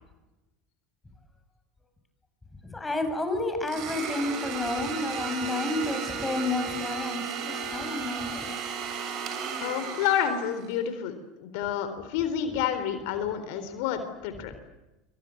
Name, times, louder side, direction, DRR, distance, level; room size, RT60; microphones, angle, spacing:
voice 1, 2.7-8.6, left 2 dB, 15° left, 7 dB, 7.7 m, -31 dB
Domestic sounds home sounds, 3.7-10.7, right 6 dB, 50° right, 7.7 m, -34 dB
voice 2, 9.6-14.5, left 9 dB, 65° left, 10 dB, 3.9 m, -29 dB
26.5 x 25.0 x 8.0 m, 1.0 s
hypercardioid pair, 80°, 0 cm